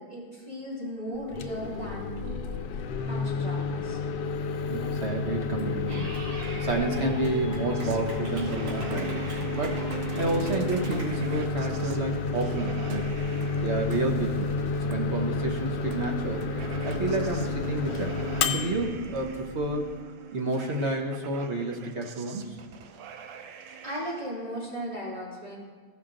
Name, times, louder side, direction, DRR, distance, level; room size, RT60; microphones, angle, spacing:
voice 1, 0.0-2.5 3.0-4.0 23.8-25.6, equal, 15° right, -7 dB, 3.5 m, -36 dB
Microwave oven, 1.2-20.0, left 4 dB, 80° left, 1.3 m, -31 dB
voice 2, 4.7-6.1 6.6-13.2 13.6-14.5 14.8-16.4 16.8-18.2 18.5-19.9 20.3-22.6 23.7-23.8, right 2 dB, 50° right, 2 dB, 0.9 m, -30 dB
Clapping / Cheering, 5.9-11.1, right 1 dB, 65° right, 2.6 m, -43 dB
sound 1, 7.7-24.2, right 8 dB, 85° right, 1.3 m, -41 dB
15.5 x 5.8 x 3.8 m, 1.5 s
omnidirectional pair, 1.9 m